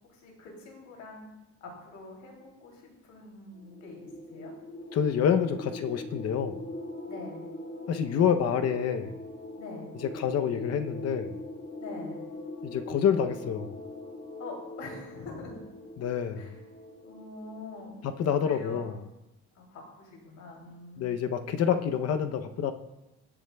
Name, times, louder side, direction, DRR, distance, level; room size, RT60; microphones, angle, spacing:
voice 1, 0.1-1.3 1.6-4.5 7.0-7.5 9.5-9.9 11.8-12.3 14.4-15.5 16.3-16.6 17.0-18.0 18.4-18.9 19.5-21.3, left 3 dB, 75° left, -1 dB, 2.9 m, -44 dB
sound 1, 3.5-17.9, left 1 dB, 40° left, 1.3 m, -42 dB
voice 2, 4.9-6.6 7.9-9.2 10.1-11.4 12.6-13.7 16.0-16.6 18.0-18.9 21.0-22.7, left 8 dB, 55° left, 8 dB, 0.7 m, -27 dB
16.0 x 8.2 x 2.3 m, 0.98 s
cardioid pair, 140°, 30 cm